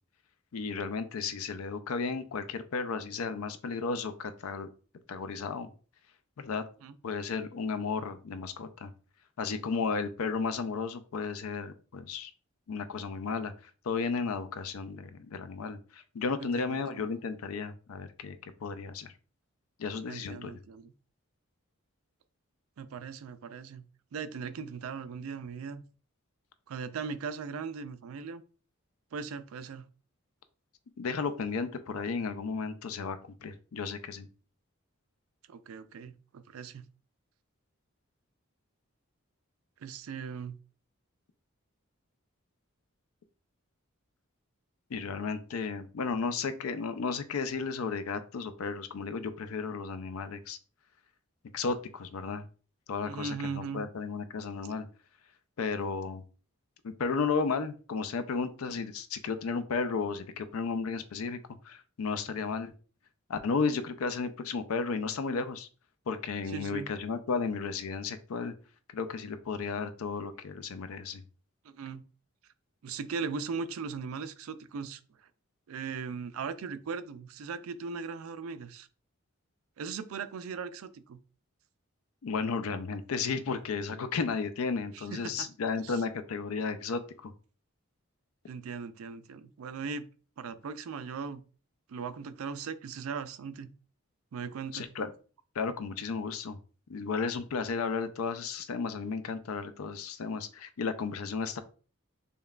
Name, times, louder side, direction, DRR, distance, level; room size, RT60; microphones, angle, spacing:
voice 1, 0.5-4.7 5.1-5.7 6.4-6.6 7.0-8.9 9.4-12.3 12.7-13.5 13.8-19.1 19.8-20.6 31.0-34.3 44.9-50.6 51.5-52.4 52.9-54.9 55.6-56.2 56.8-61.4 61.6-62.7 63.3-65.7 66.1-68.5 68.9-71.2 82.2-87.3 94.7-95.1 95.6-96.6 96.9-101.6, left 5 dB, 90° left, 0.4 m, -33 dB
voice 2, 16.4-17.1 20.1-20.9 22.8-23.9 24.1-25.8 26.7-28.4 29.1-29.8 35.5-36.9 39.8-40.6 53.0-53.8 66.5-66.9 71.6-72.1 72.8-75.0 75.7-78.9 79.8-81.2 84.9-85.5 85.8-86.0 88.5-90.1 90.4-91.4 91.9-93.7 94.3-94.9, right 5 dB, 85° right, 0.4 m, -39 dB
5.3 x 2.2 x 2.3 m
head